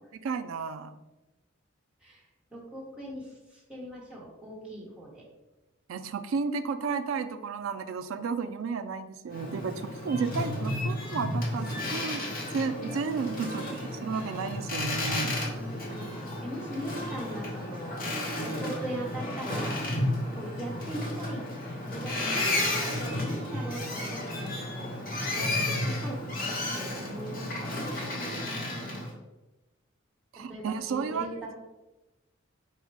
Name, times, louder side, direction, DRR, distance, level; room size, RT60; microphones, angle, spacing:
voice 1, 0.2-1.0 5.9-12.2 12.5-15.3 30.3-31.4, right 5 dB, 80° right, 10 dB, 0.3 m, -32 dB
voice 2, 2.5-5.2 13.4-13.7 15.4-18.0 18.4-19.8 20.3-21.4 21.8-24.9 25.3-26.2 26.8-27.8 30.5-31.5, right 1 dB, 5° right, -6 dB, 1.0 m, -40 dB
Boat Water vehicle, 9.3-29.1, left 1 dB, 45° left, 0.8 m, -32 dB
4.2 x 2.1 x 4.6 m, 1.0 s
head